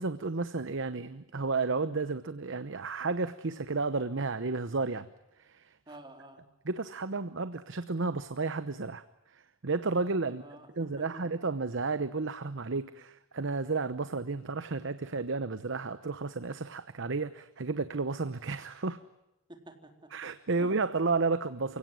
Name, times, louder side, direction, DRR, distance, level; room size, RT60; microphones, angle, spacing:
voice 1, 0.0-5.1 5.4-5.7 6.6-9.0 9.3-10.4 10.7-19.0 20.1-21.8, right 3 dB, 65° right, 12 dB, 0.9 m, -32 dB
voice 2, 5.9-6.4 10.2-11.2 19.5-19.9 20.6-20.7, right 1 dB, 25° right, 4 dB, 3.8 m, -49 dB
29.5 x 17.0 x 9.2 m, 0.94 s
head